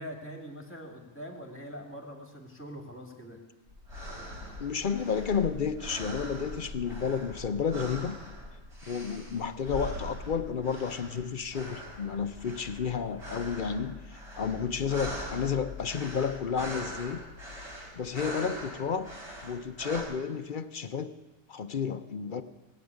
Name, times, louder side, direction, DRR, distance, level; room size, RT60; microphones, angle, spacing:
voice 1, 0.0-3.4, equal, 10° left, 3 dB, 2.4 m, -43 dB
sound 1, 3.7-20.0, left 1 dB, 55° right, 4.4 m, -41 dB
voice 2, 4.6-8.2 8.9-17.2 17.9-19.1 19.4-21.1 21.5-22.4, left 6 dB, 50° left, 11 dB, 0.7 m, -31 dB
19.0 x 8.0 x 9.6 m, 1.1 s
omnidirectional pair, 1.4 m